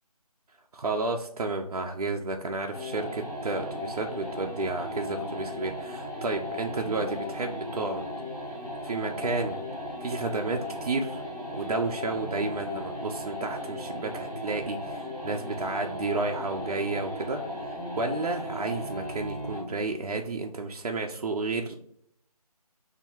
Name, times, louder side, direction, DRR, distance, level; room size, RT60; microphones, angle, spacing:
voice 1, 0.7-8.1 8.8-9.6 10.0-11.2 11.5-21.8, right 3 dB, 75° right, 3 dB, 0.5 m, -31 dB
sound 1, 2.7-19.7, left 1 dB, 5° right, 1.3 m, -36 dB
3.3 x 2.4 x 4.4 m, 0.69 s
figure-of-eight pair, 180°, 20 cm